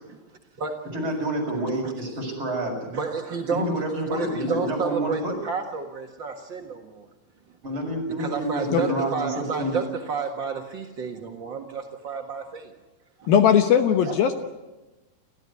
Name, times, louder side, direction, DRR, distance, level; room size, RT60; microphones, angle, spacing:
voice 1, 0.9-2.7 3.5-5.3 7.6-9.3 9.6-9.7, right 1 dB, 30° right, 0 dB, 7.3 m, -28 dB
voice 2, 2.9-3.7 4.0-7.1 8.2-12.7 13.2-13.3 14.0-14.2, right 5 dB, 70° right, 3 dB, 1.0 m, -30 dB
voice 3, 13.3-14.3, left 8 dB, 70° left, 6 dB, 2.7 m, -18 dB
30.0 x 14.5 x 9.8 m, 1.1 s
omnidirectional pair, 4.9 m